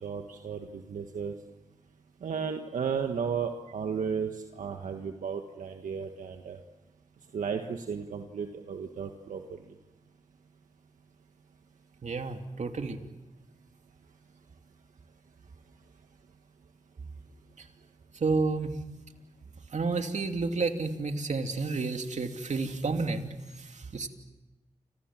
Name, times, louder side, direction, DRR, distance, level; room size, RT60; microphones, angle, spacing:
voice 1, 0.0-1.3 2.2-6.6 7.3-9.4, right 6 dB, 85° right, 4 dB, 1.5 m, -34 dB
voice 2, 12.0-13.0 18.2-18.7 19.7-23.3 23.9-24.1, right 4 dB, 65° right, 5 dB, 2.8 m, -30 dB
29.5 x 26.5 x 7.5 m, 1.0 s
cardioid pair, 40°, 13 cm